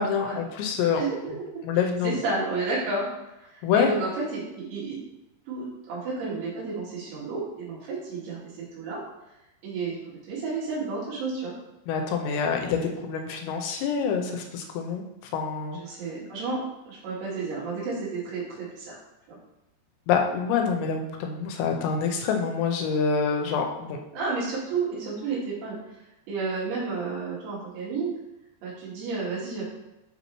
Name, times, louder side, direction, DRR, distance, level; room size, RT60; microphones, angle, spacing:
voice 1, 0.0-1.0 1.6-2.2 3.6-4.0 11.9-15.0 15.3-15.8 20.1-24.0, left 6 dB, 85° left, 3 dB, 2.9 m, -26 dB
voice 2, 1.0-1.5 2.0-3.1 3.4-5.0 5.5-8.4 8.8-9.0 9.6-11.6 15.8-16.6 16.9-19.0 19.3-19.4 24.1-25.8 26.3-28.1 28.6-29.6, right 3 dB, 85° right, -6 dB, 4.2 m, -31 dB
7.8 x 4.0 x 3.0 m, 0.93 s
omnidirectional pair, 5.0 m